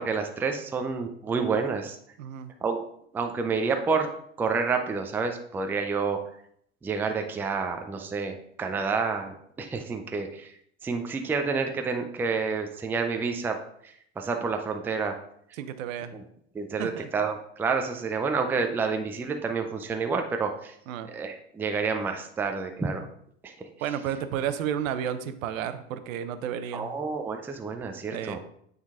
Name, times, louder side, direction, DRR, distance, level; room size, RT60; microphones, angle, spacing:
voice 1, 0.0-2.0 2.6-2.8 3.1-4.1 4.4-6.2 6.8-10.5 10.8-13.6 13.8-15.2 16.1-16.2 16.5-20.7 21.0-23.1 23.4-23.7 26.7-28.4, right 4 dB, 5° right, 5 dB, 0.4 m, -29 dB
voice 2, 2.2-2.5 15.6-16.1 16.8-17.1 20.9-21.1 23.8-26.9 28.1-28.4, right 9 dB, 75° right, 11 dB, 0.8 m, -32 dB
8.8 x 4.0 x 3.6 m, 0.68 s
supercardioid pair, 120°, 40 cm